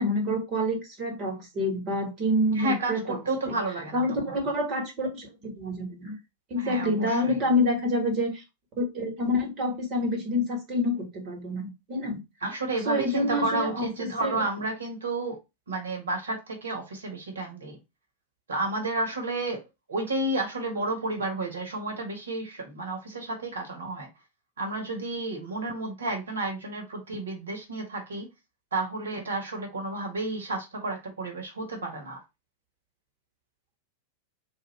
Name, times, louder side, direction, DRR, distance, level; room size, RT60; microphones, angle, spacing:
voice 1, 0.0-3.2 3.9-6.2 6.5-8.4 8.8-12.2 12.8-14.3, left 1 dB, 35° right, 1.6 m, -27 dB
voice 2, 2.5-4.0 6.6-7.4 12.4-15.4 15.7-17.8 18.5-19.6 19.9-24.1 24.6-28.3 28.7-32.2, right 2 dB, 70° right, 1.2 m, -31 dB
2.5 x 2.5 x 3.2 m
figure-of-eight pair, 90°, 0 cm